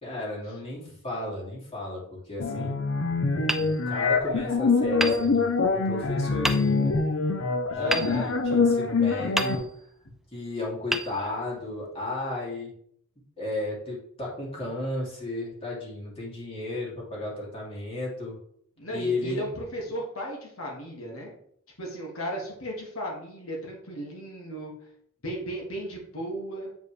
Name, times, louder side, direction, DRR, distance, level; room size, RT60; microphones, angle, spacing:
voice 1, 0.0-2.8 3.5-7.0 7.7-9.8 10.3-12.7 13.4-18.4 18.9-19.4, left 2 dB, 30° left, -4 dB, 2.6 m, -34 dB
sound 1, 2.4-9.6, left 4 dB, 70° left, 0.7 m, -25 dB
Hammer, 3.4-4.5 5.0-5.9 6.4-7.1 7.9-8.9 9.3-10.1 10.9-11.8, right 1 dB, ahead, 0.4 m, -32 dB
voice 2, 7.8-8.3 18.8-21.3 21.8-24.7 25.2-26.7, equal, 85° left, -2 dB, 1.9 m, -35 dB
8.1 x 4.9 x 3.3 m, 0.68 s
head